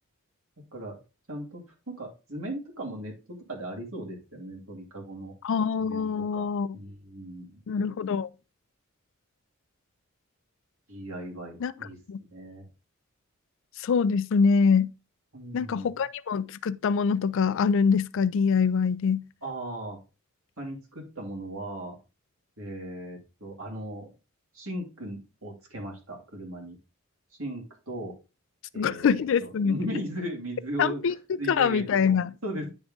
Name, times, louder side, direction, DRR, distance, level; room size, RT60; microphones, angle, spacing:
voice 1, 1.3-5.3 5.8-6.5 6.7-7.6 10.9-12.0 12.3-12.7 15.3-15.9 19.4-20.0 20.6-22.0 22.6-24.1 24.5-26.8 27.3-28.2 28.7-31.0 31.4-32.7, right 1 dB, 75° right, 2.8 m, -37 dB
voice 2, 5.4-6.8 7.7-8.3 11.6-11.7 12.1-12.2 13.8-14.9 15.5-19.2 28.8-29.8 30.8-31.1 31.5-32.3, left 6 dB, 65° left, 0.4 m, -24 dB
9.9 x 3.6 x 3.8 m
head